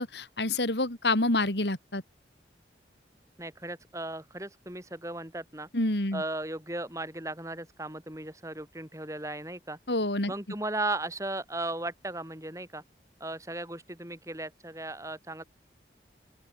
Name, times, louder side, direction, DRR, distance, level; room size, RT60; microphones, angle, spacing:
voice 1, 0.0-2.0 5.7-6.2 9.9-10.3, left 2 dB, 75° left, 4.2 m, -27 dB
voice 2, 3.4-5.7 6.1-9.8 10.3-12.8 13.2-15.4, right 2 dB, 15° right, 7.8 m, -36 dB
open air
head